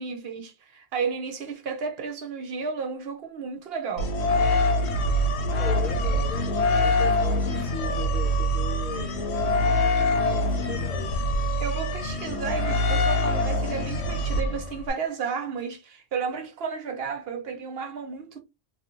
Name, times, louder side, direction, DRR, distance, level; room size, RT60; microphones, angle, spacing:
voice 1, 0.0-4.2 11.6-18.4, right 5 dB, 65° right, 0.9 m, -32 dB
sound 1, 4.0-14.9, left 1 dB, 85° left, 0.9 m, -24 dB
voice 2, 5.6-11.2, left 4 dB, 45° left, 0.9 m, -38 dB
2.6 x 2.5 x 2.8 m
omnidirectional pair, 1.1 m